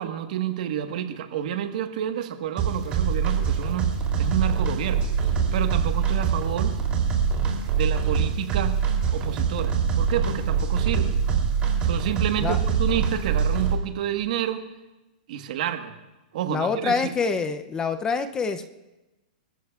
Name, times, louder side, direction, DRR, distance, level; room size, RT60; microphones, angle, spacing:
voice 1, 0.0-3.9 4.2-5.1 5.5-6.8 7.7-8.8 9.1-11.2 11.8-14.6 15.3-15.9 16.3-17.1, right 11 dB, 60° right, 7 dB, 1.4 m, -29 dB
sound 1, 2.6-13.7, right 6 dB, 25° right, 3.1 m, -24 dB
voice 2, 16.5-18.6, left 5 dB, 15° left, 9 dB, 0.5 m, -26 dB
27.0 x 14.0 x 2.4 m, 1.1 s
hypercardioid pair, 150°, 5 cm